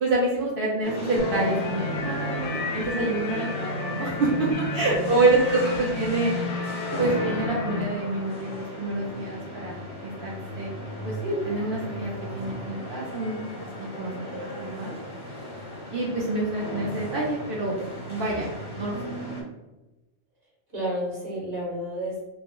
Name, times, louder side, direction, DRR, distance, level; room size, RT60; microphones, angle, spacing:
voice 1, 0.0-6.3 7.0-10.7 11.0-14.1 14.4-14.9 15.9-17.8 18.1-18.5 18.8-19.0, right 2 dB, 60° right, -5 dB, 0.8 m, -27 dB
sound 1, 0.8-19.4, equal, 30° left, 0.5 m, -36 dB
sound 2, 1.2-7.8, left 3 dB, 90° left, 0.9 m, -32 dB
voice 2, 4.7-5.4 20.7-22.2, equal, 20° right, -6 dB, 1.1 m, -32 dB
2.4 x 2.0 x 3.6 m, 1.1 s
omnidirectional pair, 1.2 m